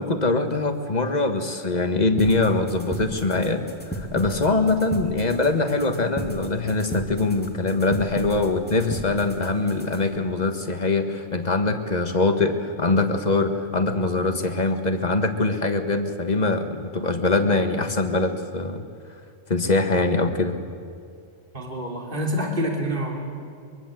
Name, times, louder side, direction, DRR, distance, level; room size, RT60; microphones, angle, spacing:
voice 1, 0.0-3.6 3.9-18.8 19.5-20.6, left 3 dB, 40° left, 6 dB, 1.7 m, -23 dB
sound 1, 2.2-10.2, equal, 10° left, 2.3 m, -35 dB
voice 2, 21.5-23.3, equal, 50° right, 0 dB, 3.2 m, -27 dB
24.0 x 22.5 x 7.8 m, 2.4 s
omnidirectional pair, 1.1 m